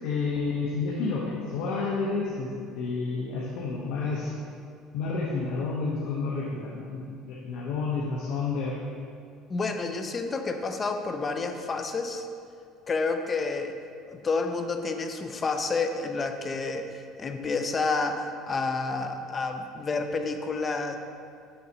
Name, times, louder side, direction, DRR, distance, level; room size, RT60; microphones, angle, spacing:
voice 1, 0.0-4.3 4.9-8.8, left 4 dB, 70° left, -4 dB, 0.9 m, -30 dB
voice 2, 9.5-12.3 12.9-13.7 14.1-21.0, left 3 dB, 25° left, 6 dB, 0.5 m, -29 dB
6.8 x 6.4 x 2.9 m, 2.3 s
cardioid pair, 140°, 0 cm